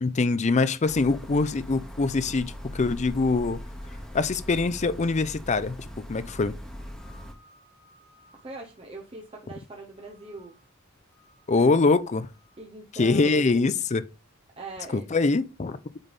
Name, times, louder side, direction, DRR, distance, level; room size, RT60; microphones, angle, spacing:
voice 1, 0.0-3.6 4.1-6.5 11.5-12.3 13.0-14.0 14.9-15.8, left 3 dB, 35° left, 0.5 m, -24 dB
sound 1, 0.8-7.3, equal, 5° left, 1.4 m, -40 dB
sound 2, 6.7-9.6 9.9-10.7 11.1-12.6, equal, 80° right, 1.6 m, -61 dB
voice 2, 8.4-10.5 11.5-11.8 12.6-13.7 14.6-15.0, right 3 dB, 25° right, 0.9 m, -42 dB
8.9 x 3.5 x 4.0 m
head